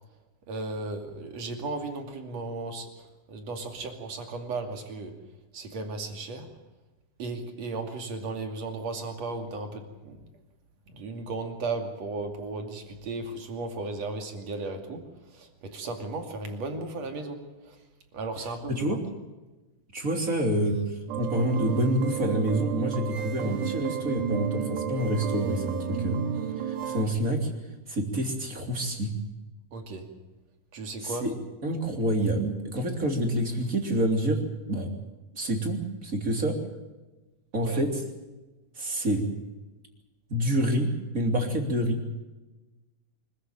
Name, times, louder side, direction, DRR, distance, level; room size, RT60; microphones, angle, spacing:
voice 1, 0.5-5.2 5.5-6.6 7.2-10.3 10.9-17.8 18.1-18.9 29.7-30.1 30.7-31.3 37.6-37.8, right 3 dB, 50° right, 5 dB, 3.5 m, -35 dB
voice 2, 19.9-26.2 26.6-27.5 27.9-29.1 31.0-31.3 31.6-34.4 34.7-34.9 35.3-36.6 37.5-37.9 38.7-39.2 40.3-42.0, right 1 dB, 25° right, 3 dB, 3.2 m, -27 dB
sound 1, 21.1-27.0, right 8 dB, 80° right, 3.7 m, -32 dB
25.5 x 15.0 x 9.0 m, 1.1 s
omnidirectional pair, 4.3 m